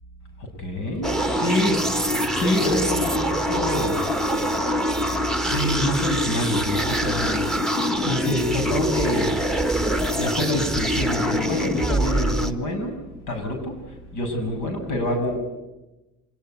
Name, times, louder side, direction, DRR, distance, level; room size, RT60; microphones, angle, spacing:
voice 1, 0.6-1.8 2.3-4.0 4.3-4.4 5.5-7.7 8.0-9.4 10.1-13.0 13.3-13.8 14.1-15.4, left 1 dB, 80° left, 5 dB, 7.1 m, -26 dB
sound 1, 1.0-12.5, equal, ahead, 1.5 m, -24 dB
26.0 x 19.5 x 9.4 m, 1.0 s
cardioid pair, 90°, 30 cm